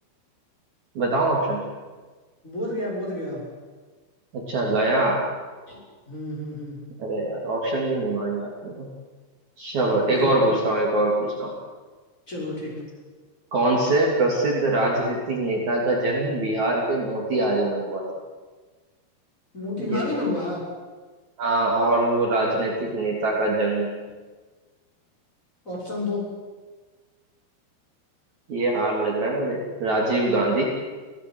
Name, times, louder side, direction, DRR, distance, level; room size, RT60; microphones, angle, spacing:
voice 1, 1.0-1.7 4.3-5.2 7.0-8.9 9.6-11.5 13.5-18.0 19.8-20.0 21.4-23.9 28.5-30.7, right 2 dB, 45° right, -2 dB, 4.1 m, -23 dB
voice 2, 2.4-3.4 5.7-6.8 10.0-10.4 12.3-12.8 19.5-20.6 25.7-26.3, left 2 dB, 15° left, -3 dB, 6.8 m, -30 dB
28.0 x 17.0 x 8.0 m, 1.4 s
omnidirectional pair, 5.1 m